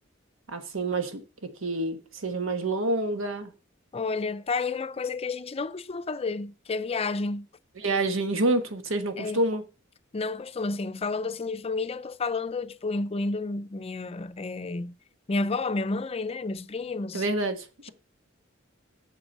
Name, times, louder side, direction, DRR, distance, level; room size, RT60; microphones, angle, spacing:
voice 1, 0.5-3.5 7.8-9.6 17.1-17.9, right 2 dB, 90° right, 1.3 m, -28 dB
voice 2, 3.9-7.5 9.2-9.4 10.1-15.0 15.3-17.2, left 3 dB, 30° left, 0.5 m, -30 dB
7.4 x 7.3 x 5.4 m
head